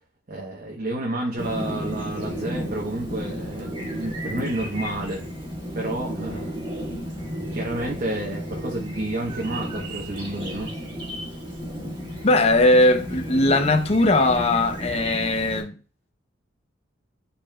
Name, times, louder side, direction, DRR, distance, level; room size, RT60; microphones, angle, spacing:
voice 1, 0.3-5.3 5.7-6.6 7.5-10.7, right 1 dB, 45° right, 1.0 m, -30 dB
Chirp tweet, 1.4-15.6, equal, 25° right, 1.8 m, -33 dB
voice 2, 12.2-15.7, left 2 dB, 35° left, 0.6 m, -19 dB
10.5 x 4.3 x 2.3 m
head